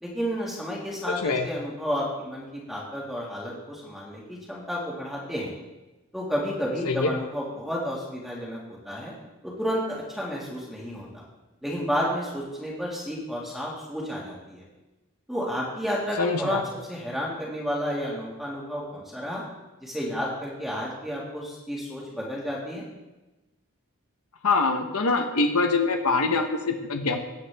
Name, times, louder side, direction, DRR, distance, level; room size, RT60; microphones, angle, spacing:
voice 1, 0.0-5.5 6.1-8.6 8.9-9.1 9.4-11.2 11.6-14.7 15.3-19.4 19.8-22.9, equal, ahead, -5 dB, 1.9 m, -31 dB
voice 2, 16.2-16.6 24.4-27.2, left 3 dB, 90° left, 5 dB, 0.9 m, -24 dB
16.5 x 9.4 x 3.4 m, 1.1 s
head